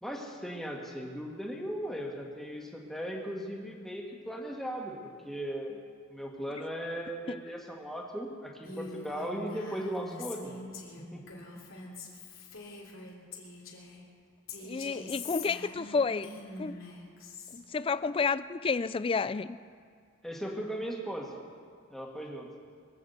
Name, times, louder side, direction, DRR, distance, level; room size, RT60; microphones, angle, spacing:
voice 1, 0.0-5.8 6.1-10.5 11.1-11.2 20.2-21.3 21.9-22.5, equal, ahead, -1 dB, 1.8 m, -37 dB
Female speech woman speaking, 8.6-14.0 14.5-17.6, left 3 dB, 85° left, 3.1 m, -44 dB
voice 2, 14.6-16.3 16.6-16.8 17.5-19.6, left 4 dB, 25° left, 15 dB, 0.3 m, -30 dB
22.5 x 7.6 x 8.1 m, 2.2 s
head